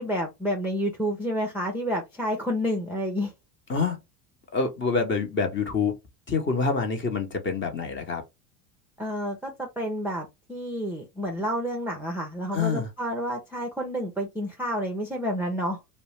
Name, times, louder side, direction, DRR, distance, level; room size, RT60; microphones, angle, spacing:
voice 1, 0.0-3.3 9.0-15.8, equal, 5° right, 0.5 m, -29 dB
voice 2, 4.5-5.9 6.3-8.2 12.5-12.9, left 4 dB, 25° left, 0.8 m, -26 dB
2.6 x 2.1 x 3.1 m
supercardioid pair, 105°, 47 cm